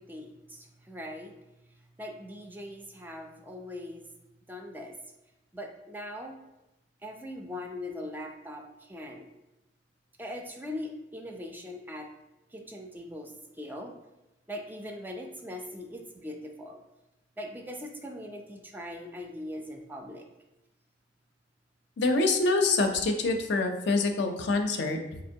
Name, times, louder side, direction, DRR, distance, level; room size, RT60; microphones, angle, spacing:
voice 1, 0.0-1.3 2.0-4.1 4.5-5.0 5.5-6.4 7.0-9.3 10.2-12.1 12.5-13.9 14.5-16.8 17.4-20.3, left 1 dB, 10° right, 2 dB, 0.3 m, -41 dB
voice 2, 22.0-25.2, left 3 dB, 65° left, 5 dB, 0.4 m, -26 dB
4.2 x 2.9 x 2.7 m, 0.94 s
head